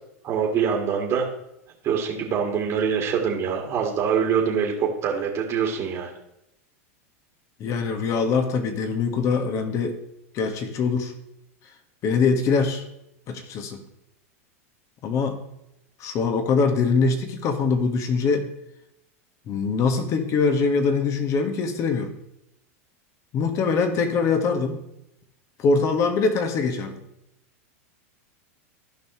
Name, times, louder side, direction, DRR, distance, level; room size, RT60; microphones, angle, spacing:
voice 1, 0.2-1.3 1.8-6.2, right 7 dB, 40° right, 0 dB, 1.9 m, -24 dB
voice 2, 7.6-10.0 10.3-11.1 12.0-12.8 13.3-13.8 15.0-15.4 16.0-18.5 19.5-22.1 23.3-24.8 25.6-27.0, left 4 dB, 40° left, 6 dB, 1.5 m, -23 dB
14.5 x 5.6 x 3.1 m, 0.83 s
hypercardioid pair, 110°, 8 cm